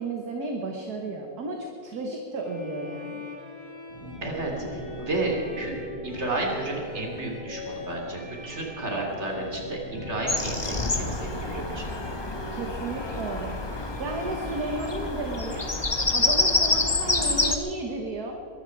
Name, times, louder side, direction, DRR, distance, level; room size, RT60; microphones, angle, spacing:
voice 1, 0.0-3.2 12.5-15.7 16.1-18.3, right 2 dB, 50° right, 2 dB, 1.7 m, -33 dB
Bowed string instrument, 2.4-15.9, left 3 dB, 50° left, 2.9 m, -43 dB
sound 1, 3.9-17.2, equal, 85° right, 3.4 m, -43 dB
voice 2, 4.2-5.7 6.0-11.9, right 2 dB, 30° right, 0 dB, 3.3 m, -32 dB
Bird vocalization bird call bird song, 10.3-17.6, left 2 dB, 30° left, 0.5 m, -27 dB
22.0 x 13.5 x 4.6 m, 2.8 s
omnidirectional pair, 2.2 m